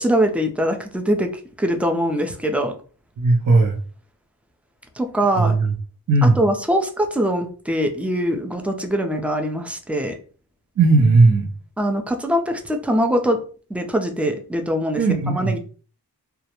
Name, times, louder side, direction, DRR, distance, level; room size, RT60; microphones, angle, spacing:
voice 1, 0.0-1.3 1.6-2.7 5.0-5.5 6.2-10.1 11.8-13.4 13.7-15.6, equal, 5° right, 4 dB, 0.4 m, -22 dB
voice 2, 3.2-3.8 5.4-5.7 6.1-6.4 10.8-11.5 15.0-15.6, right 3 dB, 50° right, -1 dB, 0.7 m, -16 dB
2.3 x 2.0 x 2.9 m, 0.40 s
wide cardioid pair, 80°, 40 cm